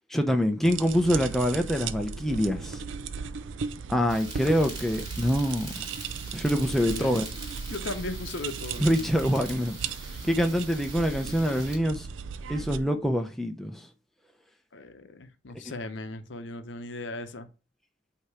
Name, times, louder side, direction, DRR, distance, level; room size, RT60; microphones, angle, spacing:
voice 1, 0.1-2.8 3.9-5.8 6.3-7.2 8.8-9.8 10.2-12.1 12.5-13.9, equal, ahead, 0.5 m, -25 dB
sound 1, 0.6-12.8, right 5 dB, 80° right, 0.5 m, -37 dB
sound 2, 4.1-11.8, right 3 dB, 20° right, 2.2 m, -43 dB
voice 2, 6.8-7.2 7.7-9.1 14.7-17.5, left 2 dB, 70° left, 0.7 m, -37 dB
8.2 x 2.9 x 4.7 m
head